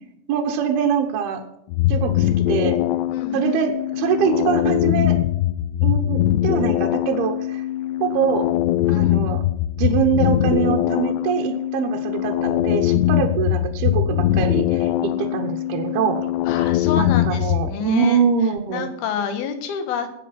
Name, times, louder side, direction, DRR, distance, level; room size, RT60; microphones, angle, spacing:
voice 1, 0.3-1.4 1.9-2.8 3.3-5.2 5.8-7.7 8.0-8.5 8.9-9.4 9.8-16.3 17.0-18.9, right 7 dB, 70° right, 2 dB, 2.5 m, -23 dB
sound 1, 1.7-17.7, left 13 dB, 80° left, 2.5 m, -21 dB
voice 2, 3.1-3.6 8.9-9.2 16.5-18.2 18.7-20.1, left 7 dB, 65° left, 8 dB, 3.1 m, -29 dB
18.5 x 8.4 x 5.8 m, 0.79 s
omnidirectional pair, 5.5 m